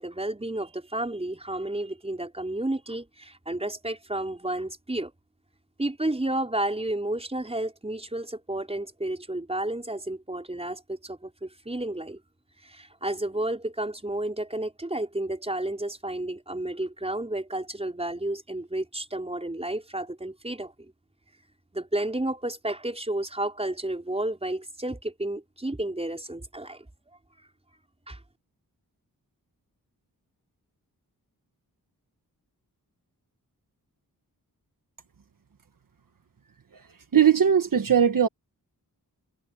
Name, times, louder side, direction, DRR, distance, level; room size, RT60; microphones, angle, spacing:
voice 1, 0.0-5.1 5.8-12.2 12.6-20.9 21.7-26.9 28.1-28.2, right 1 dB, 15° right, 5.1 m, -31 dB
voice 2, 37.1-38.3, right 8 dB, 60° right, 1.5 m, -19 dB
wide cardioid pair, 115°, 36 cm